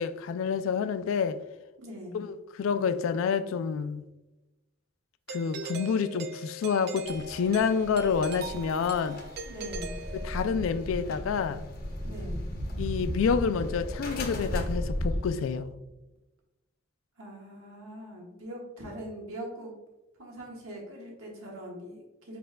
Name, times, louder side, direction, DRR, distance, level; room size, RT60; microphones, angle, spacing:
voice 1, 0.0-1.4 2.1-4.1 5.3-9.2 10.1-11.7 12.8-15.7, left 6 dB, 70° left, 0.3 m, -28 dB
voice 2, 1.8-2.2 9.4-9.9 12.0-12.4 17.2-19.7 20.2-22.4, equal, 85° right, 1.4 m, -42 dB
Doorbell, 5.3-10.7, right 3 dB, 50° right, 0.4 m, -40 dB
sound 1, 7.0-15.2, left 1 dB, 45° left, 0.8 m, -37 dB
sound 2, 9.7-15.8, equal, 30° right, 0.8 m, -38 dB
5.0 x 4.3 x 2.2 m
head